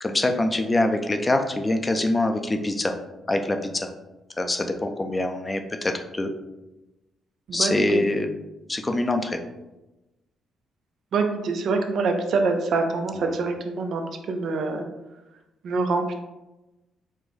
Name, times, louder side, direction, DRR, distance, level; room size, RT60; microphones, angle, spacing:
voice 1, 0.0-2.9 3.3-3.9 4.4-6.3 7.5-8.3 8.7-9.4 13.1-13.3, left 2 dB, 20° left, 6 dB, 0.5 m, -24 dB
voice 2, 7.5-8.0 11.1-14.8 15.6-16.1, right 3 dB, 65° right, 5 dB, 0.6 m, -25 dB
4.8 x 2.2 x 4.0 m, 1.0 s
cardioid pair, 90°, 0 cm